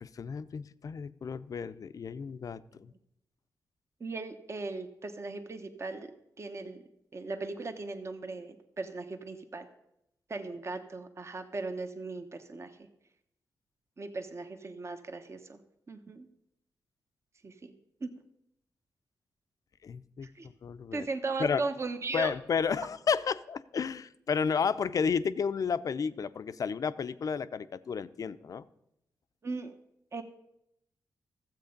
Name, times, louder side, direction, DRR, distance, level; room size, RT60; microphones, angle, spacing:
voice 1, 0.0-2.9 19.8-20.3 20.6-21.1 21.4-21.6 22.1-28.6, left 6 dB, 55° left, 13 dB, 0.5 m, -32 dB
voice 2, 4.0-6.1 6.4-6.8 7.1-9.7 10.3-12.7 14.0-15.6 15.9-16.3 17.4-17.7 18.0-18.1 20.4-20.5 20.9-22.3 29.4-29.7 30.1-30.2, right 3 dB, 40° right, 7 dB, 1.0 m, -37 dB
13.5 x 7.8 x 5.2 m, 0.81 s
cardioid pair, 65°, 7 cm